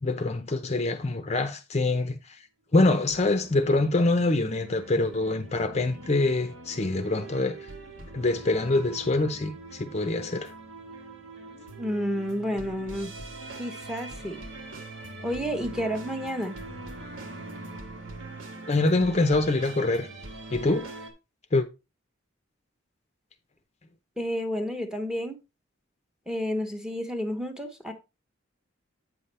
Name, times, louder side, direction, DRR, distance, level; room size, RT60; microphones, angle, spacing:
voice 1, 0.0-2.4 2.7-7.5 8.1-10.5 18.7-20.1 20.5-20.9 21.5-21.7, left 2 dB, 35° left, 0.6 m, -25 dB
sound 1, 2.8-21.1, right 2 dB, 75° right, 1.4 m, -42 dB
voice 2, 11.8-13.1 13.6-14.4 15.2-16.6 24.2-25.4 26.3-27.9, equal, 5° right, 0.9 m, -30 dB
8.2 x 5.6 x 3.3 m
head